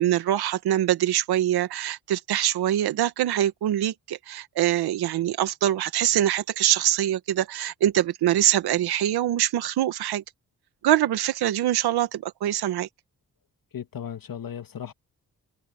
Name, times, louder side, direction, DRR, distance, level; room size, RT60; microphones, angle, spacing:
voice 1, 0.0-10.2 10.8-12.9, right 12 dB, 85° right, 1.6 m, -24 dB
voice 2, 13.7-14.9, left 9 dB, 65° left, 2.1 m, -36 dB
supercardioid pair, 45°, 37 cm